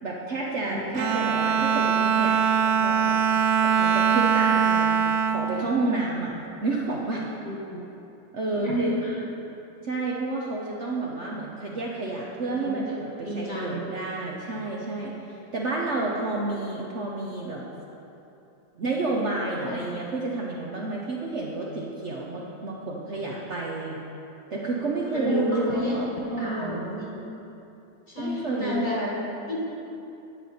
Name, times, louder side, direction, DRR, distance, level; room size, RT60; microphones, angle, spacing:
voice 1, 0.0-2.4 2.7-3.2 3.6-5.0 5.3-6.3 6.6-7.2 8.3-9.0 9.8-17.6 18.8-24.0 24.5-27.0 28.2-29.1, right 2 dB, 55° right, -3 dB, 0.9 m, -30 dB
Bowed string instrument, 0.9-6.5, right 7 dB, 75° right, 0.7 m, -23 dB
voice 2, 7.4-7.8 8.5-9.1 12.9-13.0 13.2-13.9 19.7-19.8 25.1-25.9 26.4-27.3 28.1-29.1 29.5-29.6, left 1 dB, 30° left, -4 dB, 1.4 m, -30 dB
10.0 x 8.0 x 4.3 m, 2.8 s
omnidirectional pair, 1.8 m